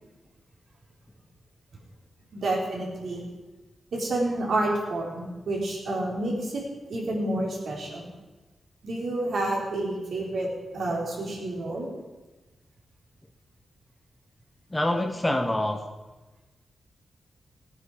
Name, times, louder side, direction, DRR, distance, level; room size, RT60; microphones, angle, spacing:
voice 1, 2.3-3.2 3.9-6.6 6.9-8.1 8.8-10.5 10.7-11.9, right 2 dB, 65° right, -2 dB, 4.1 m, -29 dB
voice 2, 14.7-15.8, left 1 dB, 10° left, 6 dB, 0.9 m, -25 dB
17.5 x 9.7 x 5.0 m, 1.2 s
wide cardioid pair, 155°, 0 cm